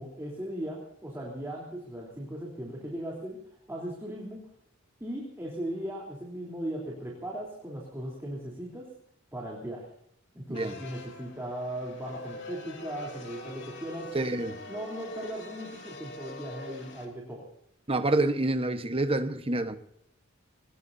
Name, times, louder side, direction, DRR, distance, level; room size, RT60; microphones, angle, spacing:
voice 1, 0.0-3.4 3.7-4.5 5.0-8.9 9.3-9.9 10.3-14.1 14.7-17.5, right 1 dB, 15° right, -3 dB, 3.5 m, -38 dB
sound 1, 10.5-17.1, left 2 dB, 65° left, 3.2 m, -44 dB
voice 2, 14.1-14.6 17.9-19.8, right 2 dB, 30° right, 9 dB, 1.2 m, -27 dB
23.5 x 19.5 x 2.7 m, 0.74 s
head